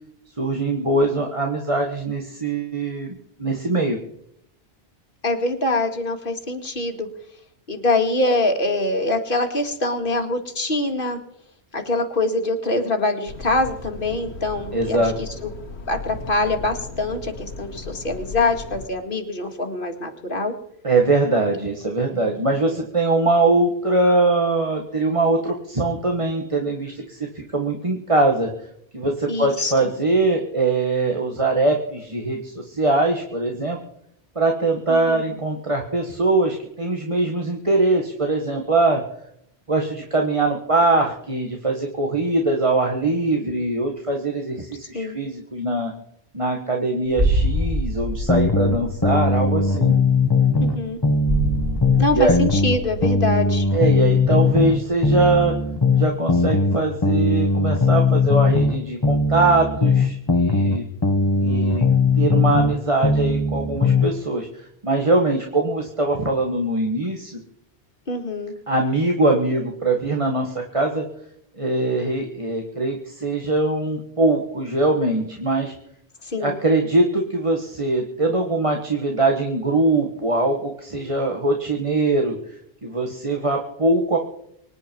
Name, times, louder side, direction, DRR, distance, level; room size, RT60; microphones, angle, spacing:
voice 1, 0.4-3.1 3.4-4.0 14.7-15.2 20.8-28.5 28.9-33.8 34.3-39.0 39.7-45.9 46.3-49.9 52.1-52.4 53.7-55.5 55.9-60.8 61.4-61.9 62.2-67.4 68.7-71.0 71.6-75.7 76.3-82.3 82.8-84.2, right 2 dB, 30° right, 1 dB, 1.7 m, -22 dB
voice 2, 5.2-7.1 7.7-11.2 11.7-15.5 15.9-20.5 22.1-22.5 29.3-29.7 34.9-35.2 44.9-45.2 50.6-51.0 52.0-53.7 68.1-68.5 76.2-76.6, left 2 dB, 55° left, 4 dB, 2.2 m, -24 dB
Truck, 13.3-18.9, left 3 dB, 75° left, 1.5 m, -36 dB
sound 1, 47.2-55.6 55.8-56.0, right 1 dB, 15° right, 2.9 m, -27 dB
sound 2, 48.3-50.8 51.0-54.8 55.0-58.8 59.0-62.8 63.0-64.1, left 3 dB, 25° left, 1.2 m, -19 dB
25.0 x 10.0 x 4.6 m, 0.73 s
omnidirectional pair, 1.1 m